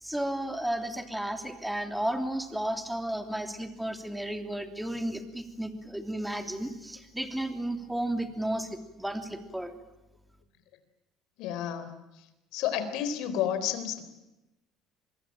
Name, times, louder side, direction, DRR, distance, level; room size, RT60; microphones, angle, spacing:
voice 1, 0.0-9.8, right 1 dB, 5° right, 7 dB, 3.1 m, -33 dB
voice 2, 11.4-12.2 12.5-14.0, left 9 dB, 70° left, 11 dB, 3.9 m, -31 dB
25.0 x 22.5 x 8.9 m, 0.98 s
cardioid pair, 115°, 0 cm